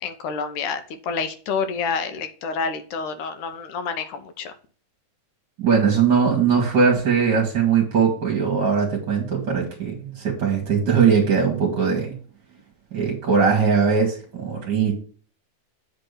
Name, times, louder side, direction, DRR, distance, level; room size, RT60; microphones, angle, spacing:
voice 1, 0.0-4.5, left 5 dB, 75° left, 9 dB, 2.3 m, -28 dB
voice 2, 5.6-12.2 12.9-14.9, right 6 dB, 40° right, -2 dB, 2.1 m, -20 dB
8.2 x 3.5 x 6.6 m, 0.42 s
omnidirectional pair, 3.7 m